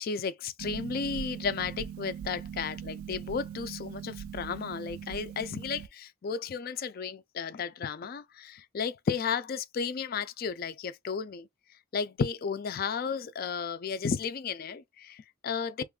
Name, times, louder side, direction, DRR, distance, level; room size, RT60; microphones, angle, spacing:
voice 1, 0.0-11.5 11.9-15.8, left 6 dB, 45° left, 0.3 m, -33 dB
Harp, 0.6-5.9, right 8 dB, 75° right, 0.3 m, -41 dB
3.0 x 2.3 x 3.5 m
head